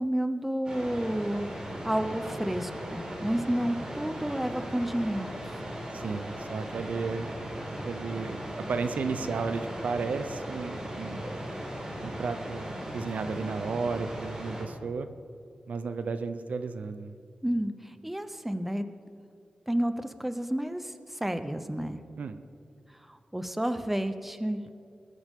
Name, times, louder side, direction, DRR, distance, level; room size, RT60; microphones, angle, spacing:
voice 1, 0.0-5.3 17.4-18.9 19.7-20.9 21.2-22.0 23.1-24.6, right 1 dB, 5° right, 9 dB, 0.8 m, -30 dB
sound 1, 0.6-14.6, equal, 35° right, 4.6 m, -38 dB
voice 2, 5.9-7.3 7.8-8.4 8.7-11.2 12.0-15.1 15.7-17.2 22.2-22.3, right 4 dB, 85° right, 9 dB, 0.7 m, -33 dB
20.5 x 13.5 x 3.7 m, 2.4 s
wide cardioid pair, 105°, 2 cm